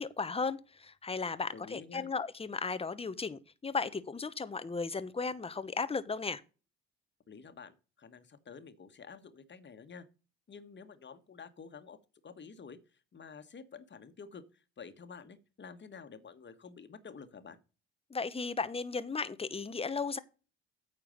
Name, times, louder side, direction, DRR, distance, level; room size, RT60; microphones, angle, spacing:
voice 1, 0.0-6.4 18.1-20.2, left 4 dB, 20° left, 0.9 m, -35 dB
voice 2, 1.5-2.1 7.3-10.0 10.5-12.0 12.2-17.6, left 5 dB, 35° left, 1.6 m, -50 dB
9.1 x 4.5 x 6.7 m
supercardioid pair, 70°, 31 cm